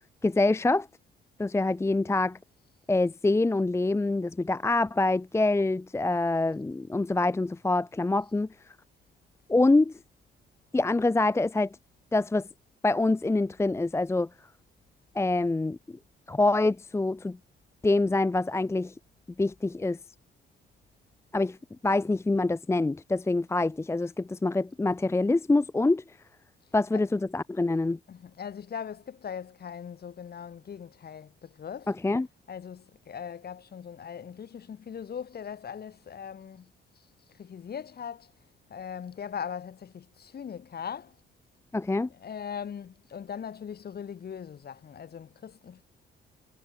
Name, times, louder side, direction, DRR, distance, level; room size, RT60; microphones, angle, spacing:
voice 1, 0.2-0.9 1.4-2.4 2.9-8.5 9.5-9.9 10.7-11.8 12.1-12.5 12.8-14.3 15.1-16.0 16.3-17.4 17.8-18.9 19.4-20.0 21.3-21.6 21.8-26.0 26.7-28.0 31.9-32.3 41.7-42.1, left 2 dB, 15° left, 0.6 m, -25 dB
voice 2, 28.1-32.0 32.5-36.7 37.4-38.3 38.7-41.2 42.1-45.8, left 7 dB, 50° left, 6.5 m, -40 dB
cardioid pair, 90°, 20 cm